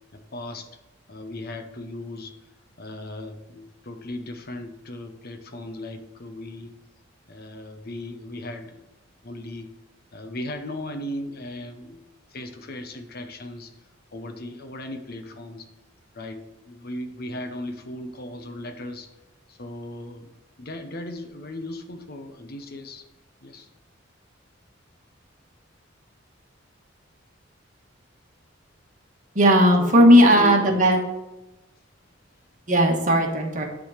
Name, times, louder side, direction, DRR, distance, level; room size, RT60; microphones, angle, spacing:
voice 1, 0.1-0.7 1.1-2.3 2.8-6.7 7.3-8.8 9.2-9.7 10.1-12.0 12.3-13.7 14.1-15.7 16.1-19.1 19.5-20.3 20.6-23.0 23.4-23.7 29.8-30.8, left 1 dB, 55° left, 7 dB, 0.9 m, -37 dB
voice 2, 29.3-31.0 32.7-33.6, equal, 40° right, 1 dB, 1.5 m, -16 dB
10.5 x 3.8 x 6.5 m, 0.99 s
head